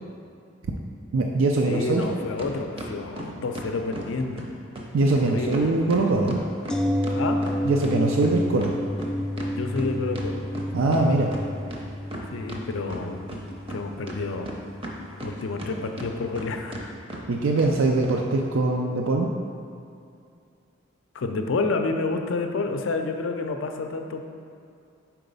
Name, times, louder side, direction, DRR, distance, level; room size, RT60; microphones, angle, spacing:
voice 1, 1.1-2.0 4.9-6.4 7.7-8.7 10.7-11.3 17.3-19.3, right 2 dB, 80° right, 0 dB, 0.4 m, -22 dB
voice 2, 1.7-4.5 5.2-5.7 7.1-7.4 9.5-10.5 12.3-13.2 13.7-14.5 15.2-16.9 21.1-24.2, left 3 dB, 75° left, 5 dB, 0.4 m, -29 dB
sound 1, 2.0-2.1 2.4-4.1 4.4-4.5 4.7-4.9 5.1-5.2 5.5-7.9 8.2-11.0 11.3-11.4 11.7-12.6 12.9-13.8 14.1-15.7 16.0-16.4 16.7-16.8 17.1-17.2 17.6-17.7 18.0-18.2, right 1 dB, 30° right, 0.6 m, -36 dB
sound 2, 6.7-16.6 16.9-17.0, equal, 5° left, 0.3 m, -31 dB
4.6 x 3.9 x 5.3 m, 2.4 s
head